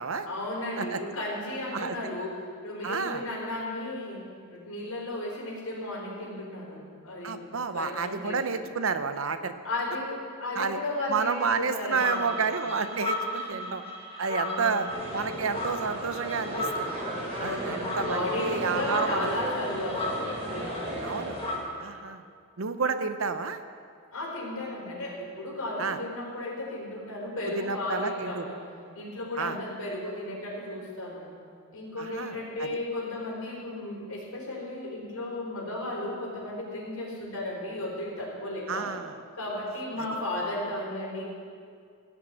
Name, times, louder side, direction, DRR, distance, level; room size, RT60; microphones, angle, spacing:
voice 1, 0.2-4.2 4.5-7.4 7.7-8.6 9.6-12.4 13.5-13.6 14.4-15.0 17.3-21.3 24.1-28.6 28.9-31.3 31.7-38.9 39.3-41.3, left 1 dB, 90° left, -3 dB, 4.7 m, -34 dB
voice 2, 2.8-3.3 7.2-9.5 10.6-10.8 11.1-13.8 14.2-14.9 15.1-16.9 17.4-19.3 21.0-21.4 21.8-22.2 22.6-23.6 25.8-26.0 27.5-28.5 29.4-29.6 32.0-32.7 38.7-39.1, right 5 dB, 70° right, 10 dB, 0.8 m, -30 dB
sound 1, 12.0-21.6, left 1 dB, 25° left, 1.6 m, -36 dB
sound 2, 14.9-21.6, right 1 dB, 30° right, 3.2 m, -35 dB
17.0 x 6.3 x 9.1 m, 2.2 s
head